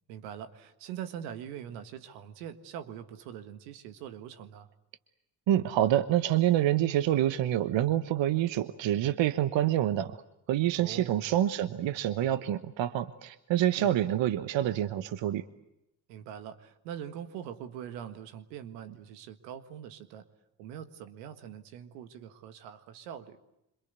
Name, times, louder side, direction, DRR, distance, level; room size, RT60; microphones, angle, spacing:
voice 1, 0.1-4.7 10.8-11.1 13.8-14.0 16.1-20.3 20.6-23.4, right 9 dB, 85° right, 10 dB, 1.8 m, -43 dB
voice 2, 5.5-10.2 10.5-15.4, right 12 dB, 65° right, 13 dB, 1.2 m, -27 dB
27.0 x 26.0 x 8.2 m, 0.86 s
hypercardioid pair, 45°, 48 cm